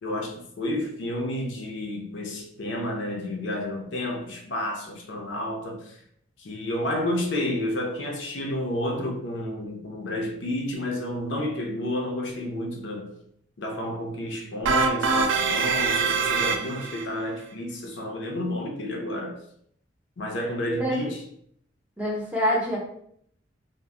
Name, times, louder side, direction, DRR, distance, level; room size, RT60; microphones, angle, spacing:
voice 1, 0.0-6.0 6.4-13.1 13.6-19.4 20.2-21.2, left 1 dB, 75° left, 0.5 m, -30 dB
sound 1, 14.7-17.0, right 5 dB, 85° right, 0.3 m, -24 dB
voice 2, 20.7-21.1 22.0-22.8, equal, 5° right, 0.6 m, -26 dB
2.1 x 2.1 x 3.4 m
head